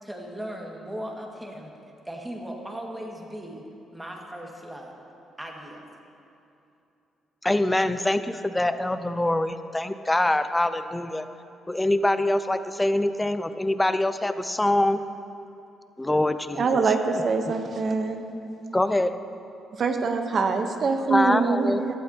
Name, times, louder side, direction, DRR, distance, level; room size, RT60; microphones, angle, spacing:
voice 1, 0.0-1.7 2.0-3.6 3.9-4.9 5.4-5.8, equal, 10° right, -1 dB, 1.8 m, -37 dB
voice 2, 7.4-11.3 11.7-15.0 16.0-16.8 17.1-17.2 18.7-19.1 21.1-21.8, left 1 dB, 10° left, 11 dB, 0.5 m, -24 dB
voice 3, 16.6-18.2 19.8-22.0, right 4 dB, 50° right, 6 dB, 0.9 m, -24 dB
16.5 x 12.0 x 2.8 m, 2.8 s
cardioid pair, 90°, 0 cm